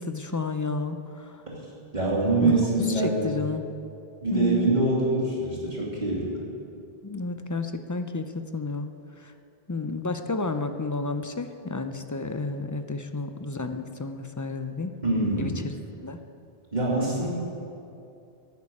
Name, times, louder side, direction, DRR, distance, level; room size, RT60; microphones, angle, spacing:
voice 1, 0.0-1.4 2.4-3.6 4.3-4.7 7.0-8.9 9.2-9.3 9.7-15.0 15.4-15.7 16.0-16.2, left 3 dB, 25° left, 8 dB, 0.5 m, -31 dB
voice 2, 1.9-3.3 4.2-6.4 15.0-15.5 16.7-17.3, right 2 dB, 45° right, -5 dB, 3.0 m, -24 dB
11.5 x 9.4 x 8.6 m, 2.6 s
omnidirectional pair, 1.0 m